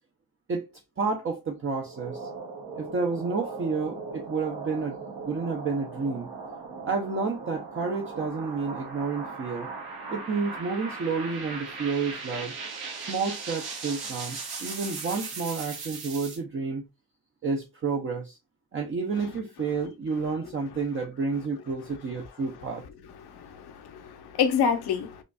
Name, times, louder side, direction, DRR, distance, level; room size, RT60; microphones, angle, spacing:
voice 1, 1.0-2.3 2.8-5.0 5.3-6.3 6.9-9.7 10.1-12.5 13.1-16.9 17.4-18.4 18.7-22.9, right 4 dB, 35° right, 0.5 m, -30 dB
sound 1, 1.8-16.4, right 4 dB, 75° right, 1.4 m, -38 dB
voice 2, 23.2-25.2, left 7 dB, 80° left, 0.8 m, -27 dB
5.0 x 2.4 x 2.2 m
wide cardioid pair, 160°, 39 cm